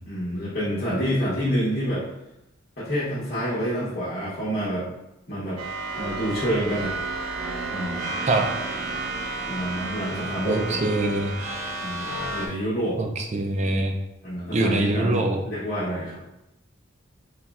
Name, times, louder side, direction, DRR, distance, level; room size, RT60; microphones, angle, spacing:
voice 1, 0.0-2.0 2.8-4.9 5.3-5.6 6.0-7.0 7.7-8.1 9.5-10.8 11.8-13.0 14.2-16.2, equal, 45° left, -10 dB, 1.0 m, -28 dB
sound 1, 5.6-12.5, right 3 dB, 80° right, 0.7 m, -31 dB
voice 2, 10.5-11.3 13.0-13.9 14.5-15.4, right 2 dB, 35° right, 3 dB, 0.4 m, -23 dB
4.1 x 3.1 x 2.3 m, 0.90 s
head